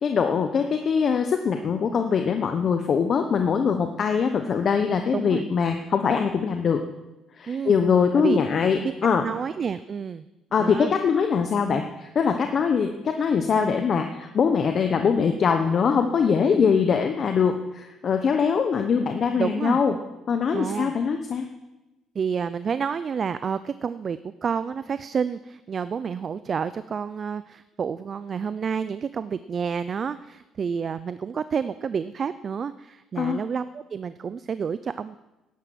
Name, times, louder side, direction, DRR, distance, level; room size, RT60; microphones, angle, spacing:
voice 1, 0.0-6.8 7.4-9.2 10.5-19.9 20.3-21.4 33.2-33.4, left 6 dB, 45° left, 6 dB, 1.0 m, -22 dB
voice 2, 5.1-5.4 7.5-7.8 8.1-8.4 8.8-8.9 9.2-10.3 10.6-10.9 16.3-16.6 19.4-19.8 20.5-20.9 22.2-35.1, right 6 dB, 40° right, 14 dB, 0.5 m, -29 dB
12.0 x 10.5 x 7.7 m, 1.0 s
cardioid pair, 100°, 0 cm